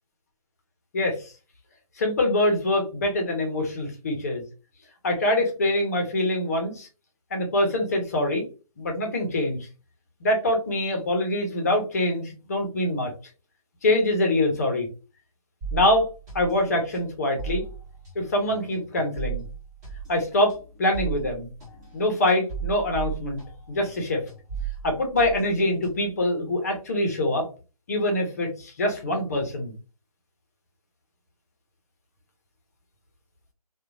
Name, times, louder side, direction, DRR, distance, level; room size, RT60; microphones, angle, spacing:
voice 1, 0.9-1.3 2.0-4.4 5.0-6.9 7.3-8.4 8.8-9.6 10.2-13.1 13.8-14.9 15.7-16.1 16.3-17.7 18.1-19.4 20.1-21.5 21.9-23.4 23.7-24.2 24.8-27.5 27.9-29.7, left 1 dB, 25° left, 2 dB, 0.6 m, -24 dB
sound 1, 15.6-24.0 24.3-26.2, right 8 dB, 25° right, 1.3 m, -36 dB
2.8 x 2.1 x 2.5 m, 0.33 s
figure-of-eight pair, 160°, 20 cm